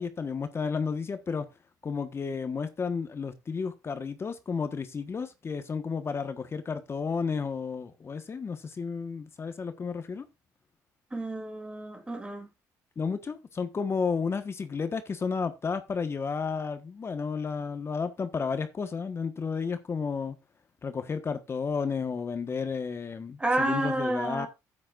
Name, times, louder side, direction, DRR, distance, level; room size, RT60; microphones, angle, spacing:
voice 1, 0.0-1.5 1.8-10.3 13.0-20.3 20.8-24.5, left 5 dB, 35° left, 1.3 m, -32 dB
voice 2, 11.1-12.5 23.4-24.5, right 2 dB, 15° right, 2.8 m, -30 dB
12.5 x 8.7 x 2.5 m
supercardioid pair, 75°, 7 cm